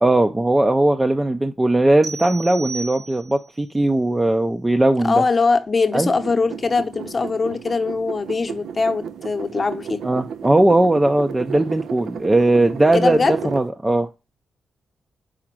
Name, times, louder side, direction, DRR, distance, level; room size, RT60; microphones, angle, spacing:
voice 1, 0.0-5.2 5.9-6.1 10.0-14.1, right 2 dB, 15° right, 0.5 m, -18 dB
sound 1, 2.0-3.6, right 4 dB, 65° right, 2.0 m, -34 dB
voice 2, 5.0-10.0 12.9-13.4, left 4 dB, 40° left, 0.8 m, -21 dB
sound 2, 6.1-13.7, right 7 dB, 80° right, 0.3 m, -33 dB
5.0 x 4.2 x 6.0 m
cardioid pair, 75°, 0 cm